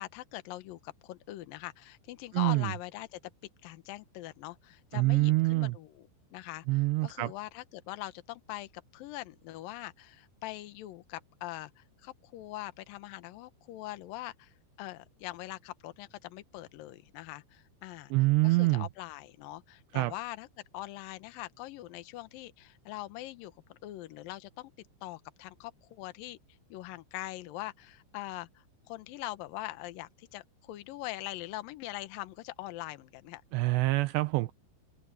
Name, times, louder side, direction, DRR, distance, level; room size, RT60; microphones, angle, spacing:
voice 1, 0.0-3.2 3.6-14.5 14.8-18.1 18.4-20.5 20.7-24.7 25.0-26.4 26.7-33.4, left 16 dB, 75° left, 2.1 m, -42 dB
voice 2, 2.3-2.7 4.9-5.7 6.7-7.3 18.1-18.9 19.9-20.1 33.5-34.5, right 21 dB, 85° right, 2.4 m, -26 dB
omnidirectional pair, 5.5 m